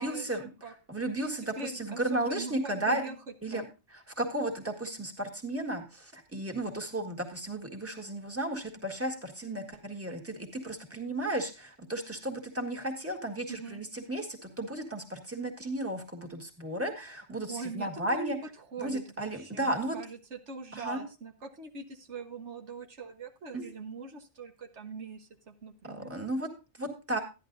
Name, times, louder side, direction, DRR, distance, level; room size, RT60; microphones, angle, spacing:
voice 1, 0.0-3.1 3.4-18.4 18.8-20.0 20.7-21.0 23.5-23.7 25.9-27.2, right 1 dB, 10° right, 3 dB, 1.7 m, -34 dB
voice 2, 1.6-3.1 3.5-3.7 13.5-13.8 17.5-18.3 18.7-26.1, right 4 dB, 90° right, 3 dB, 1.6 m, -42 dB
13.0 x 10.5 x 2.6 m, 0.30 s
omnidirectional pair, 1.2 m